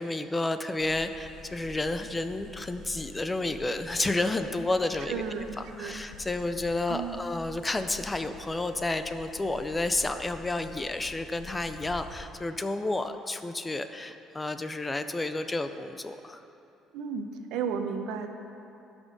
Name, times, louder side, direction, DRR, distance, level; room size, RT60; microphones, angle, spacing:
voice 1, 0.0-5.2 5.7-16.4, left 2 dB, 10° left, 9 dB, 0.4 m, -31 dB
sound 1, 0.8-12.3, left 2 dB, 85° left, 1.4 m, -48 dB
voice 2, 5.1-6.0 6.9-7.2 16.9-18.3, right 6 dB, 75° right, 6 dB, 0.9 m, -33 dB
15.5 x 6.2 x 5.2 m, 2.8 s
cardioid pair, 170°, 0 cm